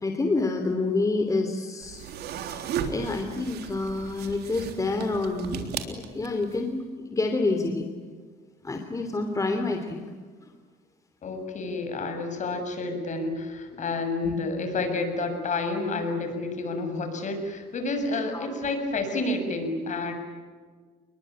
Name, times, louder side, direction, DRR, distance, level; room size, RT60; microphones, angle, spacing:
voice 1, 0.0-2.1 2.4-6.8 7.1-7.8 8.6-10.0 10.4-10.5 14.2-14.3 18.3-18.5, left 3 dB, 20° left, 5 dB, 3.0 m, -28 dB
sound 1, 1.8-6.6, right 8 dB, 75° right, 3.5 m, -35 dB
voice 2, 11.2-20.1, left 3 dB, 45° left, 6 dB, 7.3 m, -29 dB
30.0 x 21.5 x 9.0 m, 1.5 s
cardioid pair, 110°, 17 cm